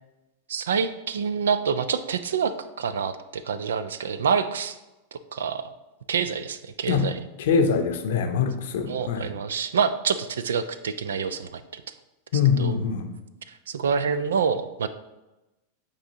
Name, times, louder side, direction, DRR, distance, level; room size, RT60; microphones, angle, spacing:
voice 1, 0.5-4.8 5.1-5.7 6.1-7.2 8.8-11.8 12.5-12.8 13.5-14.9, right 6 dB, 65° right, 13 dB, 0.4 m, -27 dB
voice 2, 7.4-9.3 12.3-13.2, left 6 dB, 55° left, 7 dB, 0.7 m, -23 dB
8.7 x 4.2 x 2.7 m, 1.0 s
figure-of-eight pair, 90°, 0 cm